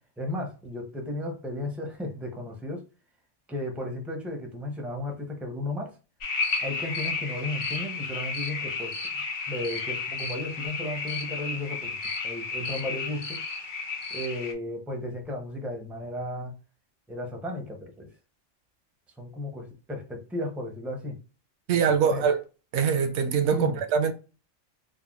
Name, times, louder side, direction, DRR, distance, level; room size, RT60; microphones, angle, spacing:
voice 1, 0.2-2.8 3.5-6.0 6.6-9.0 9.5-12.0 12.2-13.4 14.1-16.5 17.1-18.1 19.2-21.2 21.7-22.2 23.5-23.8, left 1 dB, ahead, 0.4 m, -34 dB
sound 1, 6.2-14.5, left 4 dB, 55° left, 0.6 m, -32 dB
voice 2, 21.7-22.4 22.7-24.1, right 6 dB, 75° right, 0.9 m, -23 dB
3.4 x 2.1 x 2.3 m
omnidirectional pair, 1.2 m